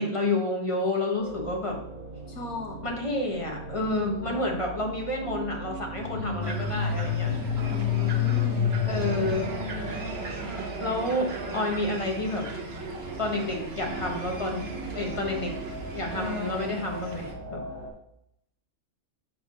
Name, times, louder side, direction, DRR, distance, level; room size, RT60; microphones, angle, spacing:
voice 1, 0.0-1.8 2.8-7.6 8.1-8.2 8.9-9.5 10.8-12.5 13.2-14.7 14.9-15.6 15.9-17.6, left 2 dB, 25° left, 1 dB, 1.4 m, -30 dB
sound 1, 1.2-17.9, right 2 dB, 70° left, 4.0 m, -40 dB
voice 2, 2.3-2.9 3.8-4.4 6.1-6.6 7.6-8.7, left 4 dB, 85° left, 1 dB, 1.6 m, -37 dB
sound 2, 5.8-10.7, left 8 dB, 45° left, 1.5 m, -29 dB
sound 3, 6.4-17.3, right 2 dB, 50° right, 1.3 m, -37 dB
7.6 x 3.8 x 6.5 m, 0.75 s
omnidirectional pair, 1.5 m